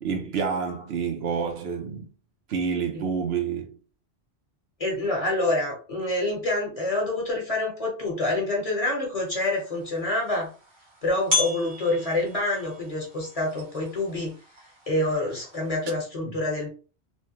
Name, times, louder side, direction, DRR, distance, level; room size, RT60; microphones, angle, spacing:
voice 1, 0.0-2.1 2.5-3.7 16.2-16.4, right 6 dB, 70° right, 0.9 m, -28 dB
voice 2, 4.8-10.5 11.0-14.4 14.9-16.7, left 2 dB, 35° left, 1.1 m, -27 dB
sound 1, 9.3-15.9, left 3 dB, 90° right, 1.5 m, -35 dB
3.2 x 2.2 x 2.8 m
omnidirectional pair, 1.1 m